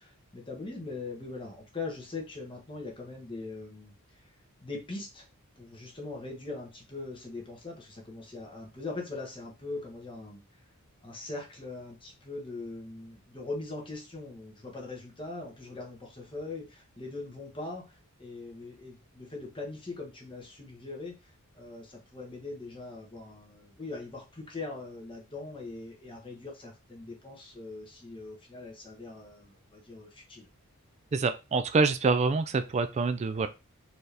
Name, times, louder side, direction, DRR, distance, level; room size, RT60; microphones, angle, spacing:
voice 1, 0.0-4.3 4.6-5.3 5.6-10.4 11.0-30.5, left 3 dB, 20° left, -1 dB, 1.2 m, -41 dB
voice 2, 31.1-33.5, right 4 dB, 30° right, 10 dB, 0.3 m, -26 dB
4.3 x 2.9 x 3.3 m, 0.28 s
head